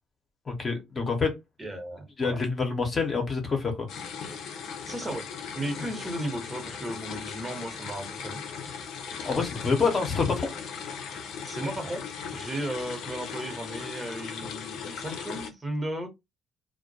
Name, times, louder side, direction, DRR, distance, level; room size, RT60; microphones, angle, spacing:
voice 1, 0.5-1.3 2.2-3.9 9.2-10.5, left 4 dB, 45° left, 0.8 m, -27 dB
voice 2, 1.6-2.4 4.8-5.2 5.5-8.4 11.4-12.0 12.3-16.1, right 1 dB, 25° right, 1.0 m, -35 dB
sound 1, 3.9-15.5, left 6 dB, 75° left, 0.5 m, -38 dB
2.2 x 2.1 x 2.7 m
supercardioid pair, 60°, 0 cm